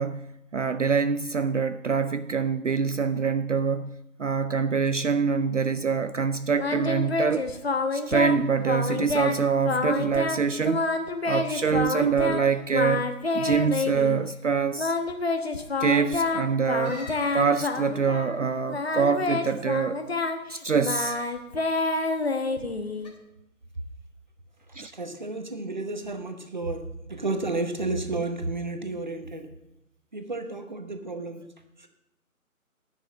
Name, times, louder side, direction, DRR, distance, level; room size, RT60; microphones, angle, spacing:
voice 1, 0.0-7.5 7.9-10.9 11.3-14.9 15.8-17.0 17.3-20.0 20.5-21.2 24.8-24.9, right 5 dB, 55° right, 0.5 m, -25 dB
Singing, 6.6-8.4 8.7-9.4 9.6-10.4 10.6-12.4 12.7-14.2 14.8-18.4 18.7-23.1, left 3 dB, 45° left, 1.1 m, -28 dB
sound 1, 16.8-18.0 20.9-21.3 21.9-22.3 23.0-23.1, left 2 dB, 30° left, 1.9 m, -44 dB
voice 2, 24.7-29.5 30.1-31.5 31.8-31.9, right 2 dB, 30° right, 0.9 m, -32 dB
10.5 x 6.1 x 8.3 m
figure-of-eight pair, 170°, 44 cm